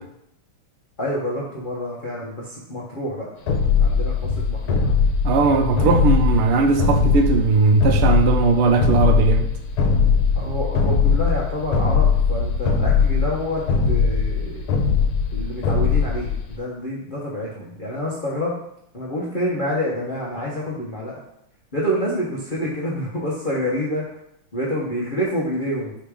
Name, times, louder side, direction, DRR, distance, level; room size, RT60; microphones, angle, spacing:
voice 1, 1.0-3.3 3.8-4.9 6.0-6.1 10.3-14.6 15.3-18.5 18.9-21.2 21.7-24.0 24.5-26.0, equal, 45° left, -5 dB, 0.6 m, -27 dB
sound 1, 3.5-16.6, left 5 dB, 75° left, 1.6 m, -20 dB
voice 2, 5.2-9.5, right 4 dB, 85° right, 5 dB, 1.6 m, -18 dB
5.1 x 4.0 x 4.9 m, 0.77 s
omnidirectional pair, 2.4 m